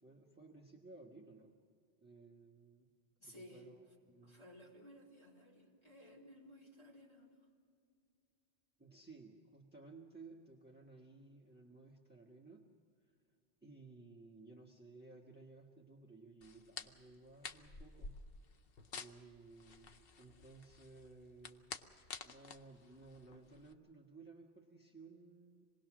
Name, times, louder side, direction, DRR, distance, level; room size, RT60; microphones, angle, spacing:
voice 1, 0.0-1.6 2.0-2.9 3.2-4.5 8.8-12.7 13.0-13.2 13.6-18.2 18.9-25.6, right 3 dB, 10° right, -1 dB, 1.5 m, -58 dB
voice 2, 3.2-3.6 4.2-7.3, left 1 dB, 25° left, -4 dB, 4.3 m, -57 dB
sound 1, 16.4-23.7, left 4 dB, 60° left, 1.0 m, -51 dB
26.5 x 20.0 x 6.2 m, 2.3 s
omnidirectional pair, 1.1 m